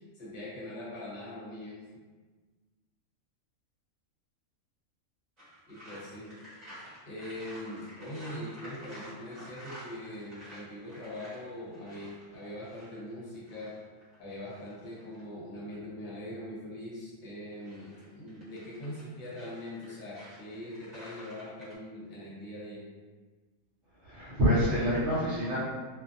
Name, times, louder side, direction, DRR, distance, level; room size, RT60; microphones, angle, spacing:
voice 1, 0.0-1.8 5.7-6.3 7.0-13.7 14.2-22.8, left 1 dB, 45° left, -6 dB, 0.8 m, -42 dB
sound 1, 5.4-15.3 17.4-21.8, equal, 35° right, 1.0 m, -51 dB
voice 2, 23.9-25.6, equal, 60° right, -10 dB, 0.9 m, -27 dB
2.5 x 2.4 x 2.5 m, 1.4 s
omnidirectional pair, 1.4 m